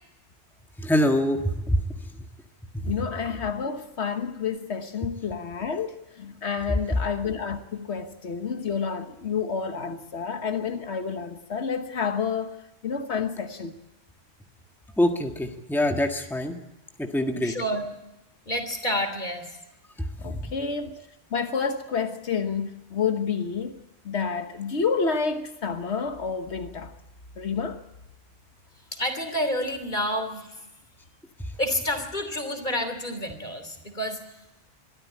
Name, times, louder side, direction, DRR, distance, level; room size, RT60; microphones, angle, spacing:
voice 1, 0.8-1.4 1.7-1.8 2.7-2.9 15.0-16.5 17.0-17.5, left 1 dB, ahead, 1.6 m, -24 dB
voice 2, 2.9-12.5 12.8-13.8 20.2-23.8 24.0-26.9 27.4-27.8, left 6 dB, 80° left, 1.5 m, -29 dB
voice 3, 17.4-17.9 18.4-19.6 28.9-30.7 31.6-34.4, equal, 45° left, 3.3 m, -29 dB
23.0 x 13.5 x 8.6 m
omnidirectional pair, 1.1 m